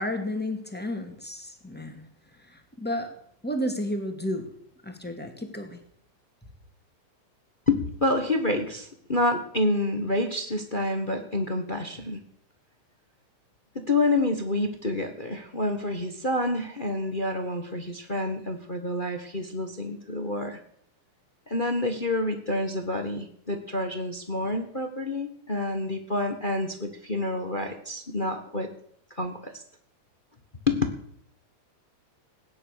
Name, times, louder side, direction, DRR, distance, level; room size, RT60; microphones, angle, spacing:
voice 1, 0.0-2.0 2.4-3.1 3.4-4.5 4.8-5.8, left 1 dB, 5° left, 5 dB, 1.8 m, -32 dB
voice 2, 7.7-12.2 13.7-20.6 21.5-28.7 29.2-29.5 30.7-30.8, left 2 dB, 35° left, 6 dB, 0.8 m, -28 dB
19.0 x 10.5 x 6.7 m, 0.67 s
omnidirectional pair, 3.6 m